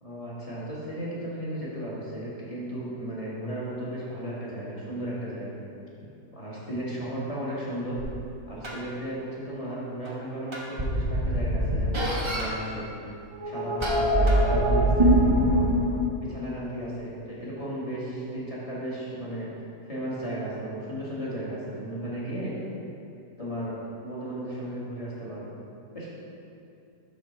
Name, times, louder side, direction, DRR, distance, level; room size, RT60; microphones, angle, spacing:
voice 1, 0.0-5.6 6.3-8.0 8.5-12.9 13.4-15.2 16.2-19.5 19.9-22.5 23.4-23.8 24.0-25.5 25.9-26.1, right 1 dB, 20° left, -8 dB, 1.6 m, -35 dB
sound 1, 8.0-8.1 8.6-8.7 10.0-10.1 10.5-12.5 13.3-15.9, right 1 dB, 30° right, 0.5 m, -23 dB
6.0 x 5.8 x 4.3 m, 2.6 s
omnidirectional pair, 1.8 m